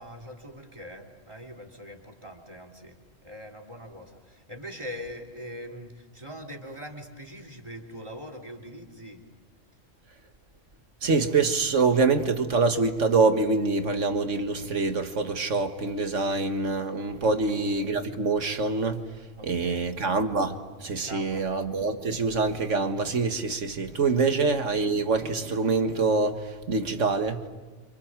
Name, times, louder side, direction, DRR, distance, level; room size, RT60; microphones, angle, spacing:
voice 1, 0.0-3.0 3.2-9.2 17.2-17.3 19.4-19.9 21.0-21.5 24.2-24.3, equal, 25° right, 3.4 m, -42 dB
voice 2, 11.0-27.5, right 4 dB, 80° right, 2.0 m, -25 dB
29.5 x 27.0 x 7.4 m
omnidirectional pair, 1.3 m